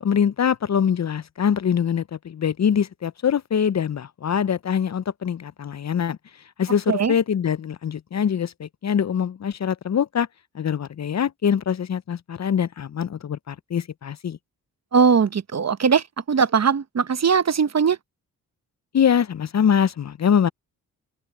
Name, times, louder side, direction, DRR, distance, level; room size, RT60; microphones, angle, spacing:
voice 1, 0.0-6.2 6.6-10.3 10.5-14.4 18.9-20.5, left 8 dB, 45° left, 0.7 m, -23 dB
voice 2, 14.9-18.0, right 6 dB, 40° right, 1.0 m, -20 dB
open air
supercardioid pair, 40°, 39 cm